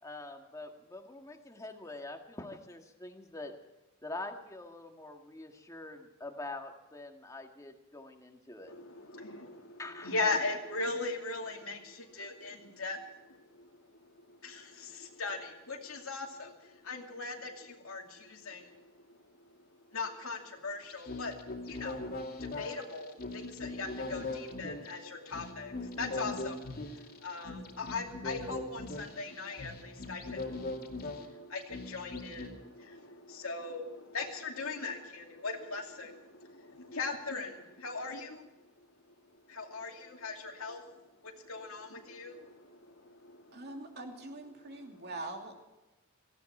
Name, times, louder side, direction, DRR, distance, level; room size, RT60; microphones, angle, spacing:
voice 1, 0.0-3.5 4.0-8.7 9.8-10.1, left 2 dB, 15° left, 4 dB, 1.8 m, -45 dB
voice 2, 8.6-13.8 14.4-19.1 19.9-21.4 21.7-22.0 22.4-38.5 39.5-40.8 41.2-43.7 44.6-45.0, left 3 dB, 80° left, 2 dB, 2.6 m, -40 dB
sound 1, 20.8-32.5, left 2 dB, 45° left, 2.5 m, -41 dB
voice 3, 43.5-45.6, right 2 dB, 50° right, 2 dB, 2.8 m, -43 dB
18.0 x 15.5 x 4.4 m, 1.0 s
head